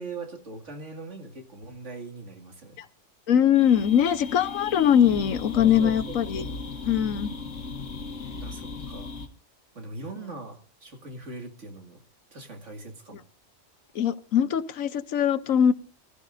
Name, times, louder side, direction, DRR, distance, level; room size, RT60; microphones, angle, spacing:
voice 1, 0.0-2.8 5.5-6.6 6.9-7.5 8.4-9.1 9.7-12.0 12.3-13.2, right 3 dB, 65° right, 4 dB, 2.5 m, -41 dB
voice 2, 3.3-6.5 6.8-7.3 13.9-15.7, left 9 dB, 90° left, 14 dB, 1.3 m, -22 dB
sound 1, 3.5-9.3, left 4 dB, 75° left, 1.9 m, -37 dB
23.5 x 14.5 x 2.6 m, 0.33 s
omnidirectional pair, 1.4 m